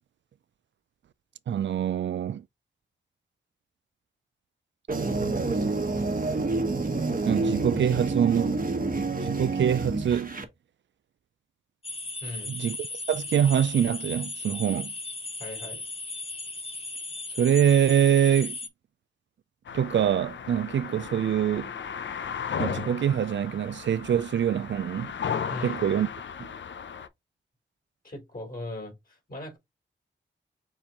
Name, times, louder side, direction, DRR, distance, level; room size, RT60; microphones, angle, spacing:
voice 1, 1.5-2.4 5.2-5.8 7.3-8.6 9.2-10.4 12.5-12.8 13.1-14.9 17.4-18.6 19.7-21.7 22.6-25.1 25.6-26.1 26.4-26.5, right 9 dB, 65° right, 0.4 m, -25 dB
sound 1, 4.9-10.4, right 3 dB, 45° right, 1.2 m, -28 dB
sound 2, 11.8-18.7, left 2 dB, 30° left, 1.1 m, -36 dB
voice 2, 12.2-12.6 15.4-15.9 25.5-25.8 28.0-29.6, left 2 dB, 45° left, 3.5 m, -39 dB
sound 3, 19.7-27.1, left 7 dB, 70° left, 0.6 m, -35 dB
7.1 x 2.5 x 2.9 m
cardioid pair, 45°, 20 cm